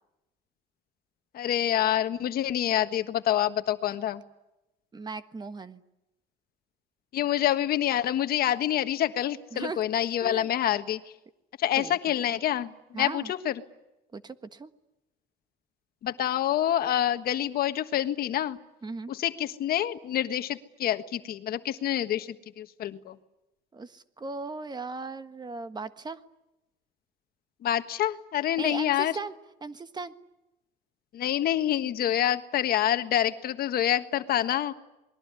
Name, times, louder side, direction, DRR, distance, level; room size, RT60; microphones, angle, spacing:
voice 1, 1.3-4.2 7.1-11.0 11.6-13.6 16.0-18.6 19.1-23.2 27.6-29.2 31.1-34.7, left 11 dB, 65° left, 10 dB, 1.5 m, -27 dB
voice 2, 4.9-5.8 9.5-9.8 10.2-10.5 11.8-12.0 12.9-13.3 14.1-14.7 18.8-19.1 23.7-26.2 28.6-29.3 29.6-30.1, right 3 dB, 25° right, 11 dB, 1.5 m, -37 dB
28.0 x 21.5 x 9.7 m, 0.95 s
cardioid pair, 110°, 17 cm